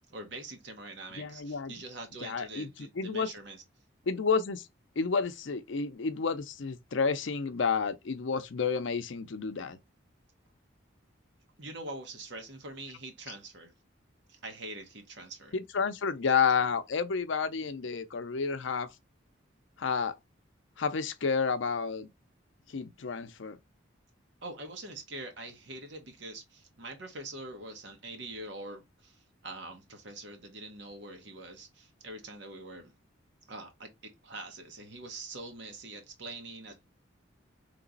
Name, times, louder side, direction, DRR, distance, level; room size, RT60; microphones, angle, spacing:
voice 1, 0.1-3.6 11.6-13.7 14.3-15.5 24.4-29.2 29.4-32.9 33.5-36.8, right 2 dB, 65° right, 1.2 m, -44 dB
voice 2, 1.2-1.7 2.2-3.3 4.1-4.7 5.0-9.8 15.5-18.9 19.8-20.2 20.8-22.1 22.7-23.6, left 5 dB, 70° left, 0.5 m, -30 dB
3.3 x 3.0 x 3.9 m
head